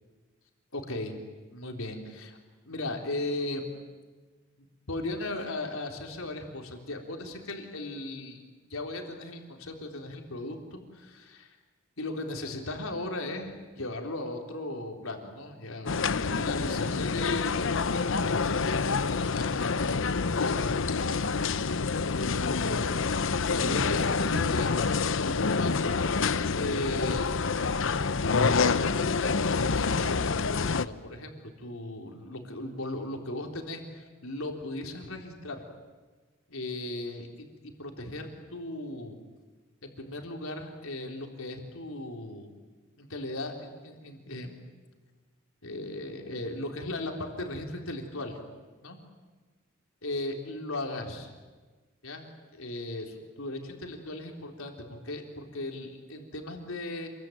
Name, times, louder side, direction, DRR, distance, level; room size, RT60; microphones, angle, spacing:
voice 1, 0.7-1.2 1.5-2.4 2.6-3.6 4.9-8.4 8.7-11.6 12.0-20.0 20.3-20.7 22.5-23.2 23.4-26.0 26.5-27.3 28.2-29.4 29.7-35.6 36.5-37.3 37.6-39.2 39.8-42.5 43.0-44.6 45.6-48.4 48.8-49.0 50.0-51.3 52.0-57.1, left 2 dB, 85° left, 2 dB, 4.0 m, -37 dB
sound 1, 15.9-30.9, left 4 dB, 65° left, 0.8 m, -27 dB
28.0 x 23.0 x 9.3 m, 1.3 s
head